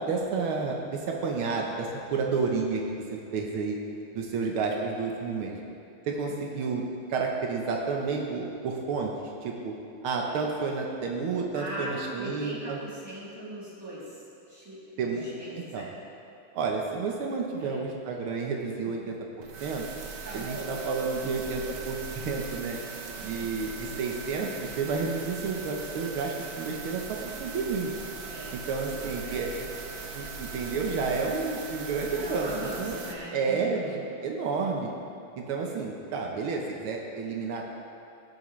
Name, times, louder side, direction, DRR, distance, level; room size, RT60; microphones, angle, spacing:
voice 1, 0.0-3.8 4.1-5.6 6.1-9.7 10.0-12.8 15.0-15.2 15.7-15.9 16.5-19.2 19.6-19.9 20.3-22.8 23.2-27.9 28.5-29.5 30.1-33.0 33.3-34.9 35.3-37.8, right 4 dB, 80° right, 0 dB, 1.8 m, -31 dB
voice 2, 11.5-14.2 14.5-15.9 17.6-17.8 20.2-20.8 23.2-23.3 28.3-28.6 29.0-29.7 32.1-34.0, right 1 dB, 10° right, -9 dB, 2.9 m, -40 dB
sound 1, 19.4-33.1, right 4 dB, 55° right, 1.0 m, -40 dB
18.5 x 7.5 x 3.2 m, 2.6 s
omnidirectional pair, 2.3 m